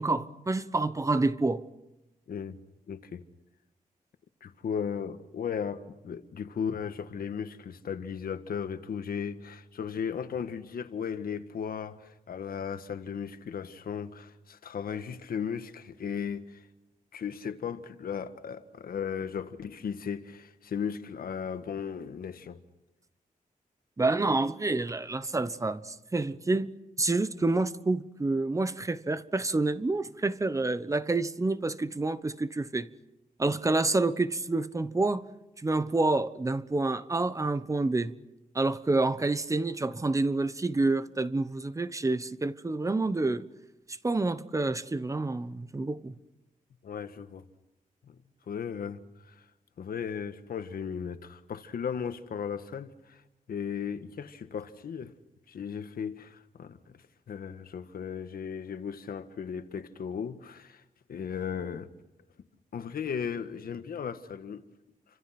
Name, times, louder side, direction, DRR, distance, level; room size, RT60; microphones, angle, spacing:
voice 1, 0.0-1.6 24.0-32.9 33.4-35.3 35.6-38.1 38.5-43.5 44.0-46.1, right 2 dB, 20° right, 1.0 m, -28 dB
voice 2, 2.3-2.6 2.9-3.2 4.4-16.7 17.1-22.6 46.8-47.4 48.0-48.1 48.5-49.4 49.8-53.2 53.5-55.1 55.5-56.8 57.3-60.8 61.1-61.9 62.7-64.7, left 7 dB, 85° left, 1.6 m, -36 dB
29.5 x 26.0 x 6.0 m
wide cardioid pair, 155°, 15 cm